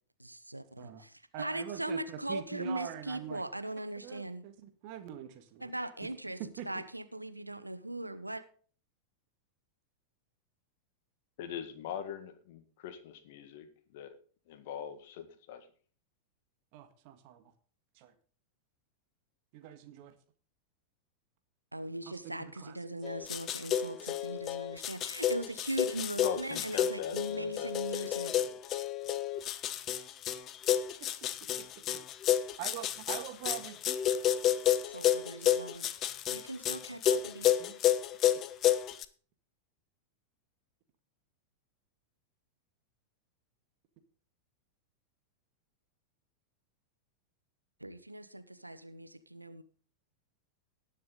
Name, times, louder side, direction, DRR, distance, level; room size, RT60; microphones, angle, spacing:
voice 1, 0.2-4.4 5.6-6.4 6.7-8.4 21.7-28.3 34.8-35.9 36.3-37.5 47.8-49.6, right 1 dB, 85° right, 12 dB, 0.9 m, -39 dB
voice 2, 1.3-3.4 4.0-5.7 6.0-6.1 6.4-6.8 16.7-17.5 18.0-18.1 19.5-20.1 22.1-22.8 31.0-31.3 31.6-31.7 32.6-33.8 37.6-37.8 38.3-38.4, right 10 dB, 45° right, 9 dB, 1.8 m, -44 dB
voice 3, 11.4-14.2 14.5-15.7 26.2-28.6, left 9 dB, 50° left, 10 dB, 1.7 m, -42 dB
sound 1, 23.0-39.1, left 11 dB, 30° left, 0.8 m, -30 dB
19.0 x 6.8 x 3.8 m, 0.43 s
figure-of-eight pair, 90°, 0 cm